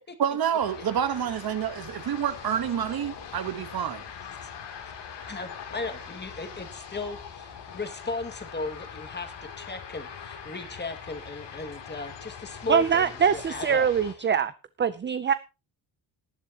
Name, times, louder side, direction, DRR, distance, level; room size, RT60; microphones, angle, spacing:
voice 1, 0.2-4.0, right 9 dB, 60° right, 1.3 m, -28 dB
sound 1, 0.6-14.1, left 7 dB, 80° left, 3.0 m, -42 dB
voice 2, 5.3-13.9, left 3 dB, 25° left, 2.1 m, -36 dB
voice 3, 12.7-14.5 14.8-15.3, right 7 dB, 25° right, 0.5 m, -23 dB
18.5 x 11.0 x 2.9 m
cardioid pair, 135°, 41 cm